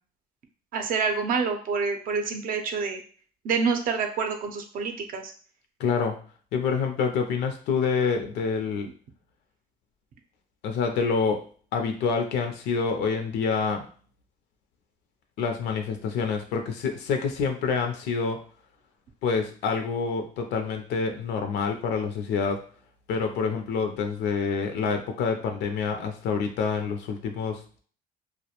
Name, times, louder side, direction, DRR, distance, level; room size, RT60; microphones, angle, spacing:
voice 1, 0.7-3.0 3.4-5.3, right 5 dB, 55° right, 6 dB, 0.5 m, -27 dB
voice 2, 5.8-6.2 6.5-8.9 10.6-11.4 11.7-13.8 15.4-18.4 19.2-22.6 23.1-27.8, left 5 dB, 85° left, 5 dB, 0.5 m, -27 dB
2.3 x 2.1 x 2.8 m, 0.44 s
cardioid pair, 110°, 17 cm